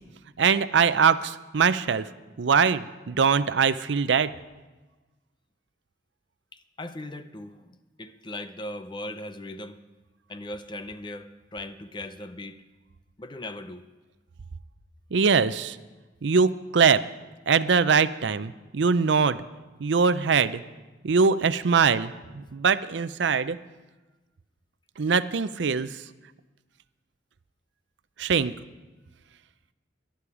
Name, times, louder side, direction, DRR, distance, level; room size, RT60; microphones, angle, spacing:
voice 1, 0.4-2.1 2.4-4.3 15.1-15.8 16.2-17.0 17.5-19.4 19.8-20.6 21.0-23.6 25.0-26.0 28.2-28.5, right 5 dB, 75° right, 14 dB, 0.5 m, -22 dB
voice 2, 6.5-9.8 10.3-12.6 13.2-13.8, left 1 dB, 25° left, 10 dB, 0.6 m, -39 dB
18.0 x 11.5 x 4.9 m, 1.2 s
head